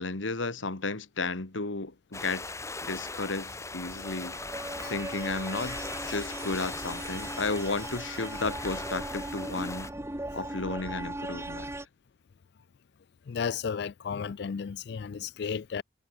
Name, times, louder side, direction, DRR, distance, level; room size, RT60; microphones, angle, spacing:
voice 1, 0.0-2.5 2.8-4.4 4.9-9.9 10.3-11.7, left 3 dB, 90° left, 1.9 m, -33 dB
sound 1, 2.1-9.9, left 3 dB, 15° left, 3.2 m, -39 dB
sound 2, 3.7-11.8, right 1 dB, 15° right, 1.3 m, -39 dB
voice 2, 13.3-15.8, left 6 dB, 60° left, 0.4 m, -33 dB
head